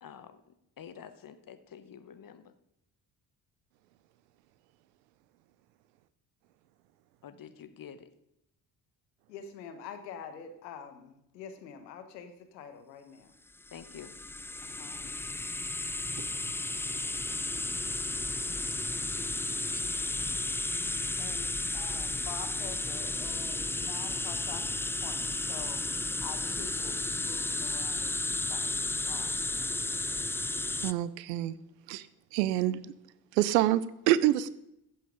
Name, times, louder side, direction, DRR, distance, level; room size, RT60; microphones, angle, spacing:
voice 1, 0.0-2.5 7.2-8.1 13.7-14.1, left 8 dB, 45° left, 1.3 m, -48 dB
voice 2, 9.3-13.4 14.6-15.1 21.2-29.8, left 7 dB, 85° left, 1.3 m, -46 dB
sound 1, 13.7-30.9, left 2 dB, 5° left, 0.3 m, -33 dB
voice 3, 30.8-31.6 31.9-32.9 33.3-34.5, right 14 dB, 85° right, 0.7 m, -27 dB
15.0 x 7.9 x 5.1 m
hypercardioid pair, 50°, 48 cm